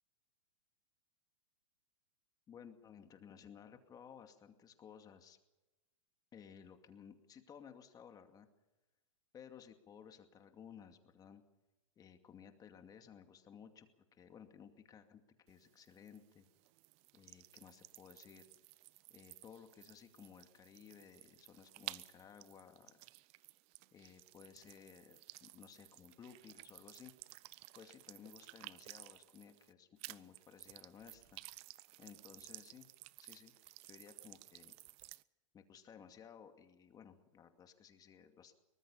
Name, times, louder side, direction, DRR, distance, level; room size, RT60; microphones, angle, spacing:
voice 1, 2.5-5.4 6.3-8.5 9.3-11.4 12.0-13.9 14.1-15.2 15.5-16.5 17.1-18.4 19.1-23.0 23.9-27.1 27.8-31.4 32.0-32.9 33.2-33.5 33.8-34.7 35.5-38.5, left 7 dB, 20° left, 6 dB, 2.4 m, -57 dB
sound 1, 15.5-29.7 30.0-35.2, right 21 dB, 40° right, 0.6 m, -55 dB
23.5 x 19.5 x 5.6 m, 1.1 s
hypercardioid pair, 130°, 17 cm